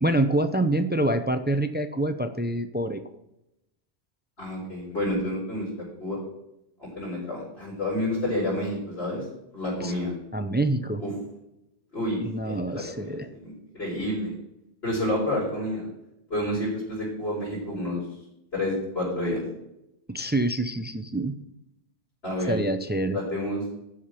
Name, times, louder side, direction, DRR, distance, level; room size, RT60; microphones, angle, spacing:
voice 1, 0.0-3.0 9.8-9.9 10.3-11.0 12.2-13.3 20.1-21.4 22.5-23.2, right 1 dB, 15° right, 9 dB, 0.4 m, -26 dB
voice 2, 4.4-5.7 6.0-6.2 6.8-9.2 9.5-10.1 11.0-11.1 11.9-14.3 14.8-15.9 16.3-18.0 18.5-19.4 22.2-22.6 23.1-23.6, left 1 dB, 65° left, -10 dB, 5.1 m, -29 dB
13.0 x 5.0 x 5.9 m, 0.86 s
omnidirectional pair, 1.1 m